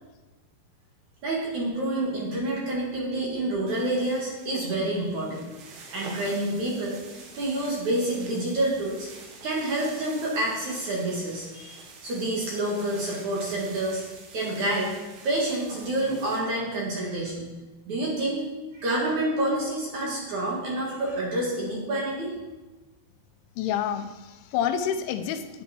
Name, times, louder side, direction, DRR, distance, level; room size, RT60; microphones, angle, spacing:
voice 1, 1.2-5.5 5.9-7.0 7.4-9.1 9.4-14.0 14.3-17.5 17.9-18.4 18.7-22.3, right 1 dB, 50° right, -4 dB, 2.6 m, -28 dB
sound 1, 3.7-16.4, right 3 dB, 85° right, 4.1 m, -46 dB
voice 2, 23.6-25.6, left 9 dB, 85° left, 8 dB, 3.1 m, -28 dB
11.0 x 9.4 x 4.4 m, 1.1 s
omnidirectional pair, 5.3 m